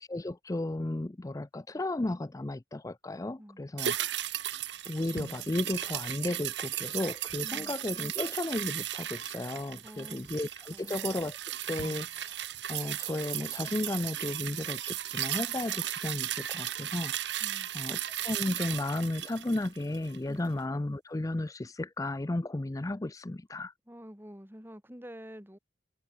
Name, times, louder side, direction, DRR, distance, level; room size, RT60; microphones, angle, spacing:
voice 1, 0.0-4.2 4.9-11.4 11.7-12.4 12.7-17.4 17.7-23.7, left 2 dB, 20° left, 0.5 m, -34 dB
voice 2, 3.4-3.7 7.4-7.7 9.8-10.3 10.7-11.0 17.4-17.7 20.3-20.5 23.9-25.6, equal, 10° right, 5.3 m, -48 dB
sound 1, 3.8-20.3 20.6-20.7, right 11 dB, 65° right, 1.4 m, -36 dB
head